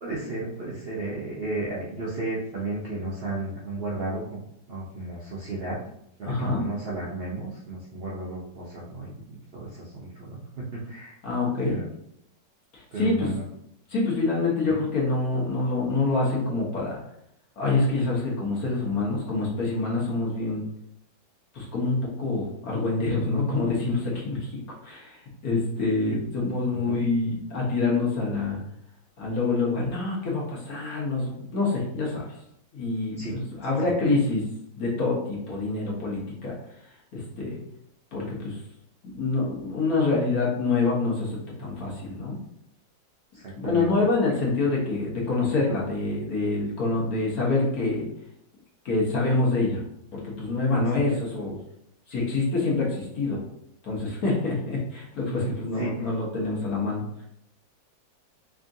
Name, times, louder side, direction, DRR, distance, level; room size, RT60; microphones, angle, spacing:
voice 1, 0.0-5.8 6.2-9.2 9.5-11.1 11.6-11.9 12.9-13.4 14.7-14.8 26.8-27.0 33.2-33.3 43.3-43.9 50.8-51.0 55.3-56.1, right 2 dB, 85° right, -5 dB, 0.5 m, -34 dB
voice 2, 6.2-6.6 11.2-11.8 12.7-13.3 13.9-17.0 17.6-20.6 21.5-24.5 24.8-28.6 29.2-32.2 32.7-34.4 34.7-36.5 37.1-37.6 38.1-38.6 39.0-42.4 43.5-48.1 48.8-49.8 50.1-51.6 52.1-53.4 53.8-57.0, left 3 dB, 55° left, -4 dB, 1.4 m, -26 dB
3.6 x 3.5 x 2.6 m, 0.74 s
omnidirectional pair, 2.1 m